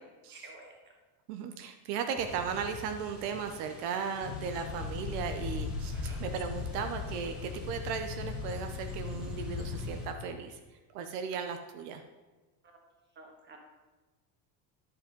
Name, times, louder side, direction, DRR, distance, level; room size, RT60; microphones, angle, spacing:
voice 1, 0.3-0.7 5.9-6.2 13.1-13.6, right 3 dB, 20° right, 2 dB, 1.7 m, -50 dB
voice 2, 1.3-10.6 10.9-12.0, right 6 dB, 70° right, 7 dB, 0.9 m, -36 dB
sound 1, 2.2-10.1, left 3 dB, ahead, 1.9 m, -48 dB
sound 2, 4.2-9.9, left 5 dB, 85° left, 1.2 m, -38 dB
10.5 x 5.9 x 5.3 m, 1.2 s
cardioid pair, 155°, 48 cm